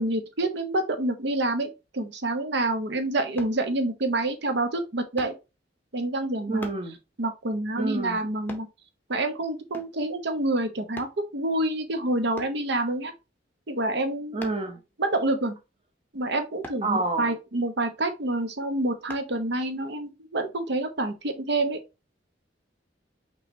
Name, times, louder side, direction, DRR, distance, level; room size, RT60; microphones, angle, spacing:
voice 1, 0.0-5.3 5.9-6.6 7.2-8.7 9.1-13.1 13.7-14.4 15.0-15.6 16.1-21.8, right 2 dB, 65° right, 0.8 m, -27 dB
sound 1, 3.4-3.6 5.2-5.4 6.6-6.9 8.5-8.7 9.7-10.0 11.0-11.2 12.4-12.6 14.4-14.7 16.6-16.9 19.1-19.3 19.9-20.0, left 1 dB, 10° left, 0.7 m, -41 dB
voice 2, 6.5-7.0 7.8-8.2 14.3-14.8 16.8-17.3, right 3 dB, 30° right, 0.8 m, -28 dB
5.5 x 3.1 x 2.7 m
head